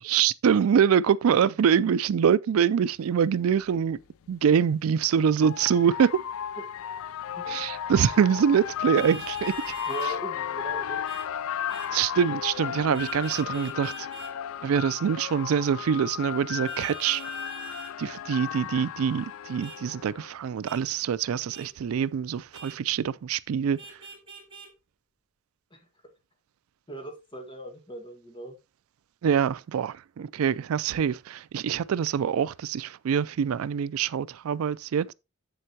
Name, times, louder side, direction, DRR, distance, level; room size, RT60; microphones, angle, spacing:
voice 1, 0.0-4.0 4.3-6.2 7.5-9.5 11.9-14.1 14.6-17.2 18.0-23.8 29.2-35.1, right 7 dB, 85° right, 0.4 m, -24 dB
sound 1, 3.2-3.3 4.7-20.3, left 9 dB, 75° left, 0.4 m, -34 dB
Vehicle horn car horn honking, 8.9-10.2 11.0-11.3 11.7-11.9 12.9-14.3 16.6-17.9 19.6-19.8 20.6-20.8 21.5-21.7 22.5-22.8 23.8-24.7, right 3 dB, 25° right, 2.7 m, -44 dB
voice 2, 9.9-11.0 25.7-25.8 26.9-28.6, right 2 dB, 25° left, 1.6 m, -39 dB
7.8 x 7.6 x 2.8 m
head